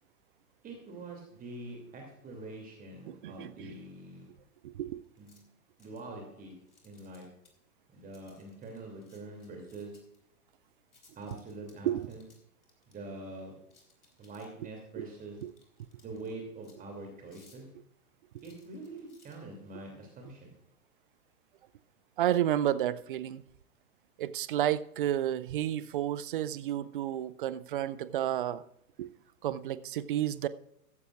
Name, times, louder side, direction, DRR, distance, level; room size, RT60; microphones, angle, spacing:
voice 1, 0.6-4.3 5.2-5.4 5.8-6.5 6.8-7.3 7.9-9.9 11.2-12.2 12.9-13.6 14.2-15.4 16.0-17.7 18.4-20.5, right 2 dB, 20° right, 2.8 m, -45 dB
voice 2, 3.1-3.8 4.6-5.0 11.8-12.1 15.0-15.1 15.4-15.5 22.2-23.4 24.2-28.6 29.0-29.1 29.4-30.5, right 12 dB, 35° right, 0.5 m, -31 dB
sound 1, 5.0-5.4 5.8-6.1 6.7-7.5 8.1-10.2 10.9-12.9 13.7-14.7 15.4-16.3 16.6-16.8 17.2-17.7 18.4-19.4, left 4 dB, 75° left, 4.1 m, -63 dB
15.5 x 14.5 x 2.5 m
figure-of-eight pair, 110°, 46 cm